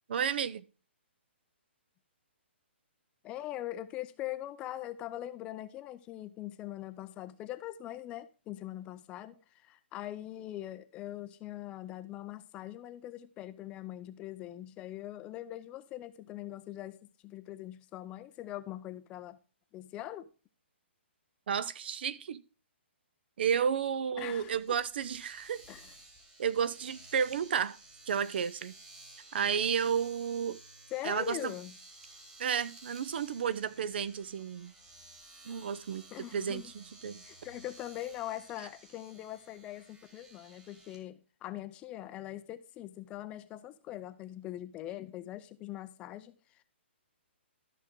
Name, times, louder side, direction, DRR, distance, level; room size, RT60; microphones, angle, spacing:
voice 1, 0.1-0.6 21.5-22.4 23.4-25.6 26.4-27.8 28.1-28.7 29.3-30.6 31.0-31.5 32.4-34.7 35.4-36.1 36.3-37.2, right 7 dB, 60° right, 0.6 m, -32 dB
voice 2, 3.2-19.4 19.7-20.3 24.2-24.8 25.7-25.9 30.9-31.7 36.1-36.7 37.2-46.6, left 13 dB, 15° left, 0.5 m, -42 dB
Domestic sounds home sounds, 24.2-41.0, right 2 dB, 15° right, 1.6 m, -55 dB
13.0 x 6.0 x 3.7 m
hypercardioid pair, 160°, 6 cm